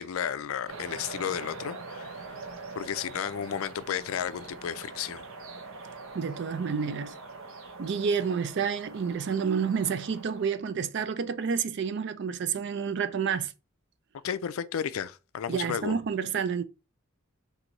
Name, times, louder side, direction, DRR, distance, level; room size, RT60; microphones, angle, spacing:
voice 1, 0.0-2.3 2.8-5.2 14.2-16.0, left 8 dB, 80° left, 0.4 m, -33 dB
sound 1, 0.7-10.5, right 3 dB, 75° right, 0.8 m, -43 dB
voice 2, 6.1-7.1 7.8-13.5 15.5-16.6, right 6 dB, 55° right, 0.4 m, -29 dB
4.5 x 2.7 x 3.9 m
head